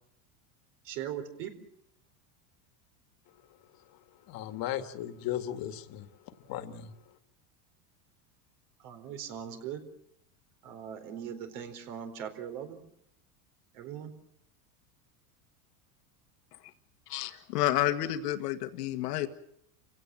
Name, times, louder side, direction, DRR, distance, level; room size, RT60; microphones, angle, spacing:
voice 1, 0.8-1.5 8.8-9.8 10.6-12.9 13.7-14.1, right 9 dB, 65° right, 4.5 m, -40 dB
voice 2, 3.3-7.2, left 11 dB, 45° left, 1.9 m, -38 dB
voice 3, 17.1-19.3, left 13 dB, 85° left, 1.8 m, -30 dB
28.5 x 17.0 x 7.6 m
supercardioid pair, 125°, 46 cm